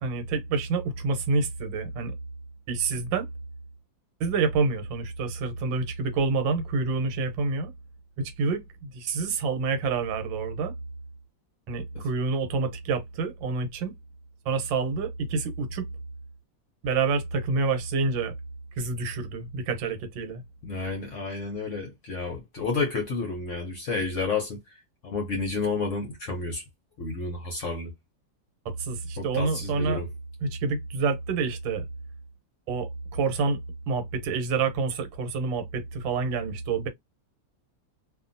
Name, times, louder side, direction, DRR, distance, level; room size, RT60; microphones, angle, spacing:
voice 1, 0.0-2.1 2.7-3.3 4.2-7.7 8.2-10.7 11.7-13.9 14.4-15.9 16.8-18.3 18.8-20.4 28.6-30.0 30.4-31.8 32.7-36.9, right 4 dB, 85° right, 1.5 m, -28 dB
voice 2, 20.6-24.6 25.0-26.6 27.0-27.9 29.2-30.1, left 4 dB, 60° left, 0.8 m, -30 dB
2.7 x 2.6 x 2.5 m
omnidirectional pair, 2.0 m